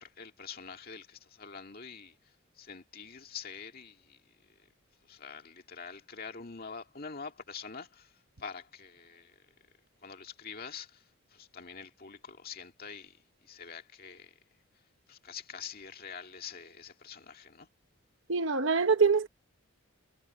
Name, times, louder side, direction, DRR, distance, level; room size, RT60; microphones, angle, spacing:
voice 1, 0.0-2.1 2.6-4.2 5.1-8.1 8.4-9.3 10.0-11.0 11.3-13.2 13.4-14.3 15.1-17.7, left 6 dB, 45° left, 2.1 m, -45 dB
voice 2, 18.3-19.3, right 5 dB, 60° right, 1.1 m, -24 dB
head